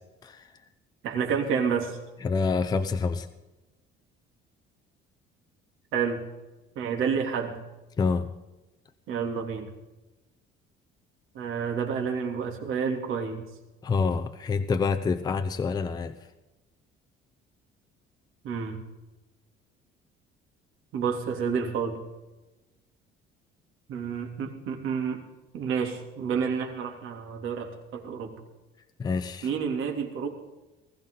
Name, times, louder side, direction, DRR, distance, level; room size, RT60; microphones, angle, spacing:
voice 1, 1.0-2.0 5.9-6.2 6.7-7.6 9.1-9.7 11.3-13.4 18.4-18.8 20.9-22.0 23.9-25.2 25.5-28.3 29.4-30.3, right 6 dB, 75° right, 2 dB, 3.1 m, -29 dB
voice 2, 2.2-3.3 8.0-8.3 13.8-16.1 29.0-29.5, left 4 dB, 20° left, 7 dB, 0.6 m, -27 dB
20.0 x 14.5 x 3.9 m, 1.1 s
cardioid pair, 165°, 21 cm